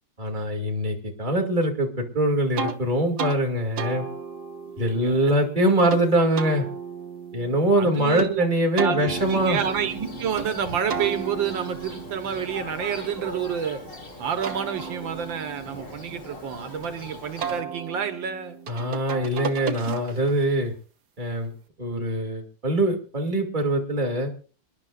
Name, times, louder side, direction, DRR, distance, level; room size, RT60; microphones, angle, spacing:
voice 1, 0.2-4.1 4.8-6.7 7.3-9.6 18.7-20.7 21.2-21.5 21.8-24.3, right 1 dB, 25° right, 0 dB, 2.7 m, -23 dB
sound 1, 2.6-2.8 3.2-3.4 3.8-6.0 6.3-8.3 8.8-10.5 10.9-13.8 14.2-16.9 17.4-20.4, right 6 dB, 60° right, 1.6 m, -35 dB
voice 2, 4.8-5.3 7.8-8.5 8.7-13.8 14.2-18.6, right 8 dB, 80° right, 8 dB, 1.9 m, -29 dB
Thunder, 9.1-17.6, left 2 dB, 30° left, 2.9 m, -40 dB
27.5 x 11.0 x 2.5 m, 0.37 s
omnidirectional pair, 2.1 m